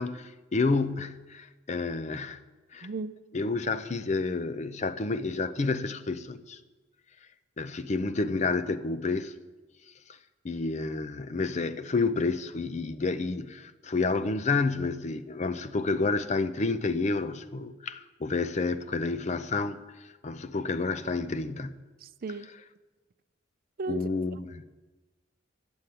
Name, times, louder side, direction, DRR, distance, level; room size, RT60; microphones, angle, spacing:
voice 1, 0.0-2.4 2.7-2.9 3.3-6.6 7.6-9.3 10.4-19.8 20.2-21.8 23.9-24.6, left 3 dB, 35° left, 0.5 m, -29 dB
voice 2, 2.8-3.2 22.0-22.5 23.8-24.1, right 3 dB, 50° right, 0.5 m, -35 dB
11.5 x 7.0 x 9.1 m
head